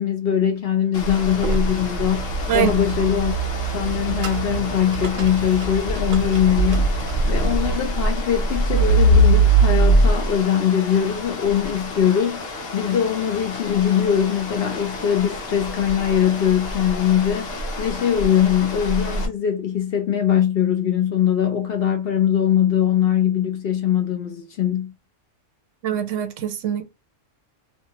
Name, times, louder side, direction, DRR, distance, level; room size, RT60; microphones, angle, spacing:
voice 1, 0.0-3.4 3.7-17.5 17.8-24.9, left 9 dB, 60° left, 0.6 m, -21 dB
sound 1, 0.9-19.3, right 1 dB, 80° left, 1.1 m, -23 dB
sound 2, 1.2-7.8, right 5 dB, 55° right, 0.6 m, -29 dB
voice 2, 25.8-26.8, right 11 dB, 80° right, 1.0 m, -23 dB
2.6 x 2.3 x 2.8 m
omnidirectional pair, 1.3 m